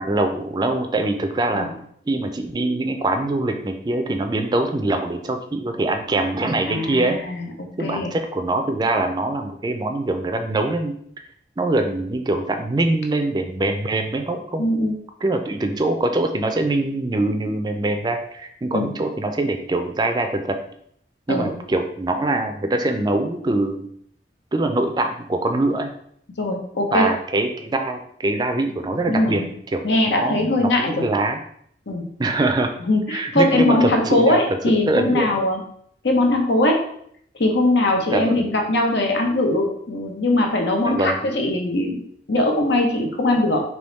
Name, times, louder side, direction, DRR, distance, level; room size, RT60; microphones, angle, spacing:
voice 1, 0.0-1.7 2.1-7.2 7.8-10.9 11.6-14.7 15.2-20.6 21.3-23.9 24.5-25.9 26.9-29.4 29.7-29.8 30.1-31.4 32.2-32.7 33.1-34.4 34.9-35.3 38.1-38.5 40.8-41.1, right 2 dB, 25° right, 6 dB, 0.4 m, -23 dB
voice 2, 6.7-7.5 7.8-8.1 14.6-14.9 18.7-18.9 21.3-21.5 26.4-27.1 29.1-29.5 29.8-31.1 31.9-32.0 32.9-35.6 36.0-36.8 37.4-42.0 42.3-43.6, left 1 dB, 85° left, 2 dB, 0.8 m, -20 dB
3.5 x 3.0 x 4.0 m, 0.68 s
head